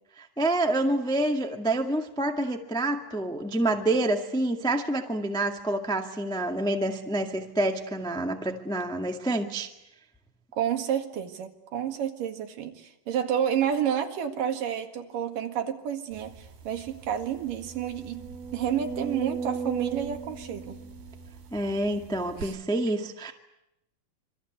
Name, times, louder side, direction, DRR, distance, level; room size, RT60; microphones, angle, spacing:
voice 1, 0.2-9.7 21.5-23.3, right 1 dB, 5° left, 3 dB, 0.5 m, -27 dB
voice 2, 10.5-16.4 16.7-18.2 18.5-20.8 22.4-22.5, right 9 dB, 65° right, 6 dB, 3.4 m, -30 dB
sound 1, 16.4-16.5 16.9-17.0 17.5-21.7 22.4-22.5, right 5 dB, 90° right, 4.9 m, -36 dB
27.0 x 24.0 x 8.2 m, 0.86 s
omnidirectional pair, 4.2 m